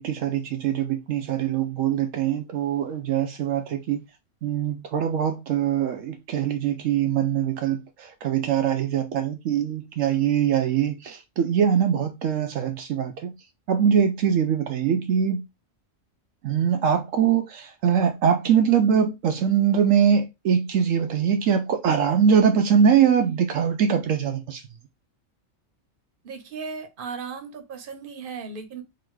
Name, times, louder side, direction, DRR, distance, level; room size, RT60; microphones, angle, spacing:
voice 1, 0.0-4.0 4.4-13.3 13.7-15.4 16.4-24.6, right 8 dB, 75° right, 0.9 m, -22 dB
voice 2, 26.2-28.8, right 5 dB, 45° right, 1.0 m, -36 dB
3.8 x 2.9 x 4.6 m
omnidirectional pair, 1.4 m